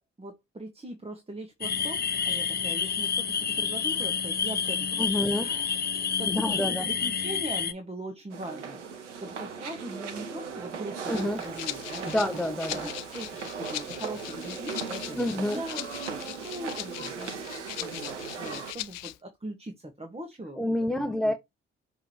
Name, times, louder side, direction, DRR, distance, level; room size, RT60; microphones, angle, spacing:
voice 1, 0.0-12.1 12.7-20.6 20.9-21.3, right 1 dB, 15° right, 1.5 m, -41 dB
sound 1, 1.6-7.7, left 6 dB, 30° left, 0.7 m, -29 dB
voice 2, 5.0-5.5 6.3-6.9 11.1-11.4 12.0-12.9 15.2-15.6 20.6-21.3, left 1 dB, ahead, 0.9 m, -28 dB
sound 2, 8.3-18.7, right 6 dB, 90° right, 0.8 m, -38 dB
Rattle (instrument), 11.1-19.2, left 17 dB, 75° left, 0.5 m, -40 dB
6.5 x 3.1 x 4.7 m
figure-of-eight pair, 40°, 35 cm